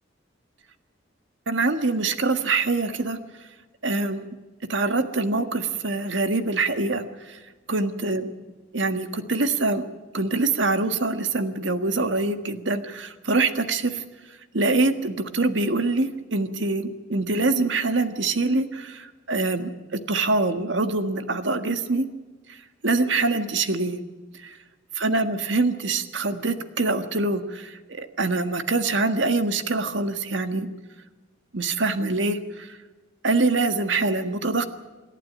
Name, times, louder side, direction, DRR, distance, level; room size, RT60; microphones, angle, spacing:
voice 1, 1.5-3.2 3.8-4.3 4.7-7.4 7.7-8.3 8.7-9.8 10.1-14.0 14.5-22.1 22.5-22.6 22.8-24.0 24.4-24.6 24.9-30.7 31.5-32.8 33.2-34.6, right 3 dB, 75° right, 9 dB, 1.6 m, -24 dB
28.0 x 11.5 x 8.8 m, 1.2 s
head